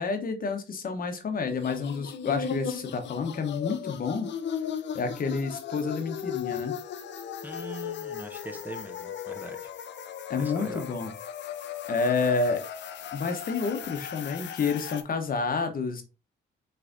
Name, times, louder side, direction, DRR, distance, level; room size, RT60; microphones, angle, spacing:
voice 1, 0.0-4.3 4.9-6.8 10.3-11.1 11.9-12.6 13.1-16.0, left 4 dB, 45° left, 0.9 m, -29 dB
sound 1, 1.5-15.0, left 8 dB, 65° left, 0.6 m, -37 dB
voice 2, 7.4-9.7 10.4-10.9, right 1 dB, 10° right, 0.7 m, -41 dB
5.8 x 3.3 x 2.6 m
cardioid pair, 90°, 20 cm